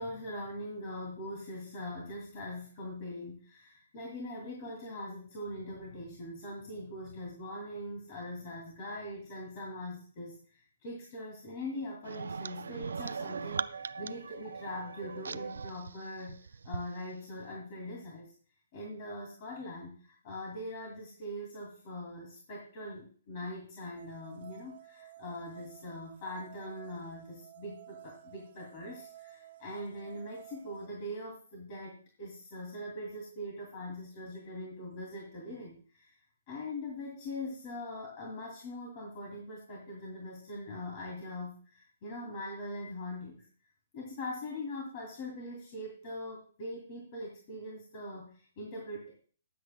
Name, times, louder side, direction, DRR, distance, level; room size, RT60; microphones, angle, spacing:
voice 1, 0.0-16.4 16.6-18.3 18.7-36.2 36.5-43.5 43.9-49.1, left 1 dB, 40° left, -1 dB, 2.5 m, -42 dB
sound 1, 12.0-16.9, right 5 dB, 80° right, 0.4 m, -39 dB
sound 2, 24.0-30.9, right 14 dB, 50° right, 0.8 m, -53 dB
22.5 x 8.0 x 2.2 m, 0.43 s
hypercardioid pair, 145°, 0 cm